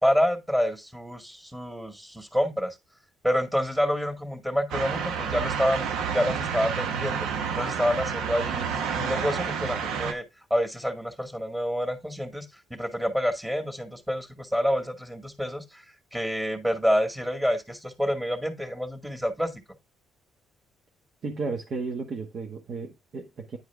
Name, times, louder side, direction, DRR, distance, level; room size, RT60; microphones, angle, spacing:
voice 1, 0.0-2.8 3.2-5.9 6.1-7.3 7.6-8.7 8.9-10.2 10.5-15.8 16.1-19.5, equal, 10° right, 2.1 m, -28 dB
sound 1, 4.7-10.1, right 6 dB, 80° right, 1.1 m, -29 dB
voice 2, 21.2-23.6, right 4 dB, 55° right, 1.5 m, -33 dB
9.9 x 4.7 x 3.5 m
cardioid pair, 90°, 0 cm